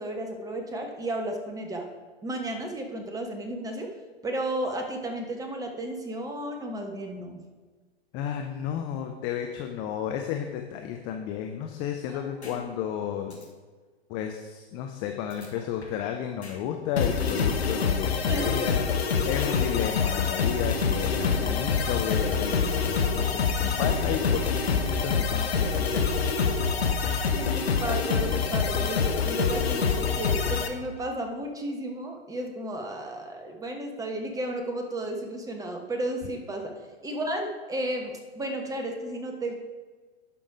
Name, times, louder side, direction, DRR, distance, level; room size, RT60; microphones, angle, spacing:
voice 1, 0.0-1.9 2.2-3.9 4.2-7.4 12.1-12.6 18.3-18.5 22.0-22.1 27.3-36.7 37.0-39.5, right 1 dB, 10° right, 3 dB, 1.2 m, -33 dB
voice 2, 8.1-13.4 14.1-26.3, left 9 dB, 15° left, 4 dB, 0.3 m, -33 dB
sound 1, 12.4-12.6 12.9-13.0 13.3-13.5 15.3-16.1 16.4-16.6 16.9-17.5 19.3-20.1, left 4 dB, 85° left, 2.2 m, -47 dB
sound 2, 17.0-30.7, left 6 dB, 70° left, 1.0 m, -26 dB
sound 3, 20.6-27.4, right 7 dB, 50° right, 3.0 m, -39 dB
11.0 x 5.3 x 4.8 m, 1.4 s
figure-of-eight pair, 110°, 32 cm